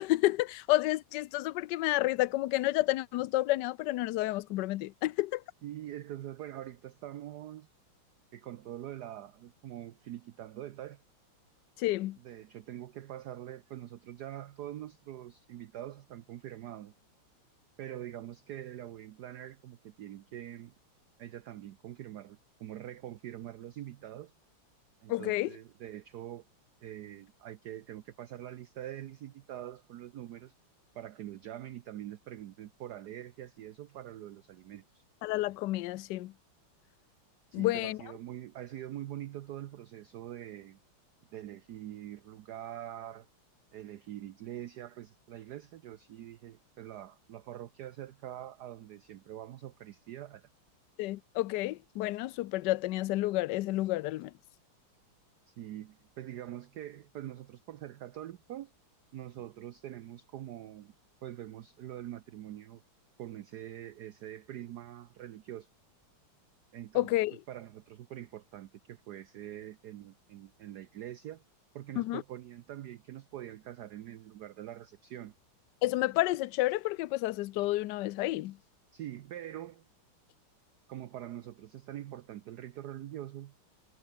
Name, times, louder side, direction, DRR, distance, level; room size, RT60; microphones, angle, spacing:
voice 1, 0.0-5.4 11.8-12.2 25.1-25.5 35.2-36.3 37.5-38.0 51.0-54.3 66.9-67.4 72.0-72.2 75.8-78.6, left 17 dB, 75° left, 1.0 m, -30 dB
voice 2, 5.6-7.7 8.3-11.0 12.2-16.9 17.8-20.7 21.2-24.3 25.0-26.4 26.8-30.5 30.9-35.0 37.5-40.8 41.3-43.3 43.7-50.5 55.5-58.7 59.1-60.9 61.2-62.8 63.2-65.7 66.7-67.2 67.5-71.4 71.7-75.3 78.9-79.9 80.9-83.5, right 12 dB, 65° right, 1.0 m, -44 dB
omnidirectional pair, 2.4 m